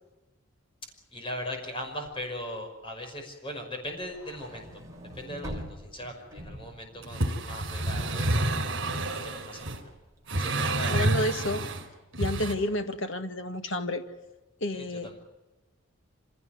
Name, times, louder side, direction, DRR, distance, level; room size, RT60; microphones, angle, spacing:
voice 1, 1.1-4.8 5.1-9.7 10.4-11.0 14.7-15.2, left 1 dB, 25° left, 4 dB, 5.5 m, -39 dB
sound 1, 4.0-10.3, equal, 15° right, 4.4 m, -45 dB
sound 2, 7.0-9.8 10.3-11.8 12.1-12.5, right 2 dB, 60° right, 4.6 m, -29 dB
voice 2, 10.9-11.6 12.2-14.0 14.6-15.1, left 1 dB, 65° left, 8 dB, 1.9 m, -30 dB
26.0 x 17.0 x 9.3 m, 1.1 s
head